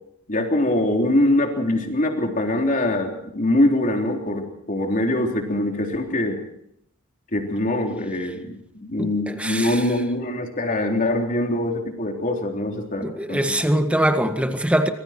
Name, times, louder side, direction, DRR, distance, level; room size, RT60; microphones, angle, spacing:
voice 1, 0.3-6.4 7.3-13.6, left 1 dB, 40° left, 3.7 m, -23 dB
voice 2, 9.0-9.8 13.0-14.9, right 1 dB, 5° right, 1.6 m, -22 dB
25.0 x 23.0 x 4.5 m
head